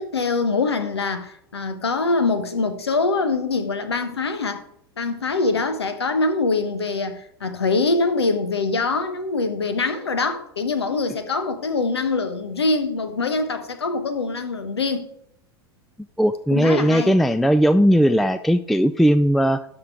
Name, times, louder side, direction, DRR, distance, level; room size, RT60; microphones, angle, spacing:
voice 1, 0.0-4.7 5.0-15.1 16.5-17.2, left 3 dB, 85° left, 1.2 m, -24 dB
voice 2, 16.2-19.7, equal, ahead, 0.3 m, -18 dB
12.5 x 4.4 x 5.0 m
hypercardioid pair, 95°, 13 cm